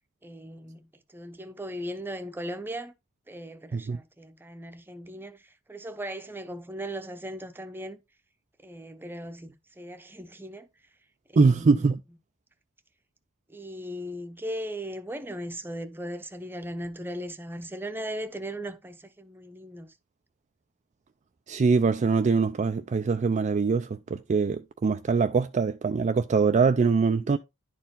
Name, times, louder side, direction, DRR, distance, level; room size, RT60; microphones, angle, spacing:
voice 1, 0.2-2.9 3.3-8.0 8.6-10.7 11.3-11.9 13.5-19.9, equal, 10° right, 0.7 m, -38 dB
voice 2, 11.4-12.0 21.5-27.4, right 4 dB, 35° right, 0.4 m, -23 dB
10.5 x 4.4 x 3.7 m
head